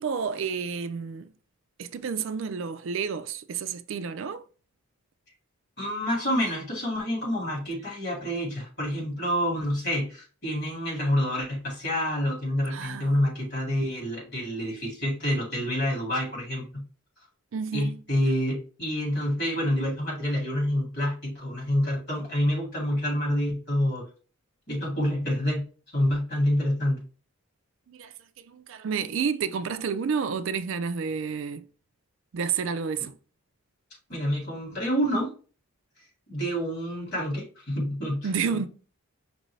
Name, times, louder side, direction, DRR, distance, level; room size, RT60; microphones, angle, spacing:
voice 1, 0.0-1.3 1.8-4.4 12.7-13.1 17.5-18.0 27.9-31.7 32.3-33.1 38.2-38.7, right 6 dB, 60° right, 0.4 m, -30 dB
voice 2, 5.8-16.8 17.7-24.0 24.7-25.7 25.9-27.0 34.1-35.3 36.3-38.7, equal, 45° left, 2.2 m, -27 dB
5.3 x 2.6 x 3.1 m
head